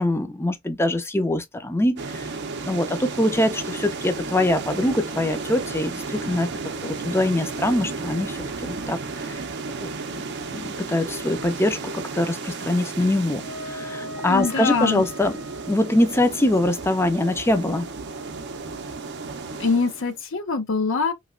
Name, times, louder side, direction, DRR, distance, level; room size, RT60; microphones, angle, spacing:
voice 1, 0.0-2.3 2.6-6.5 6.8-9.4 9.8-10.2 10.5-15.4 15.7-17.9, left 1 dB, 10° left, 0.5 m, -23 dB
sound 1, 2.0-20.2, right 4 dB, 55° right, 0.6 m, -33 dB
Wind instrument woodwind instrument, 13.3-19.0, equal, 90° left, 1.4 m, -41 dB
voice 2, 14.3-15.0 19.6-21.1, left 4 dB, 65° left, 0.6 m, -23 dB
3.1 x 2.8 x 2.4 m
head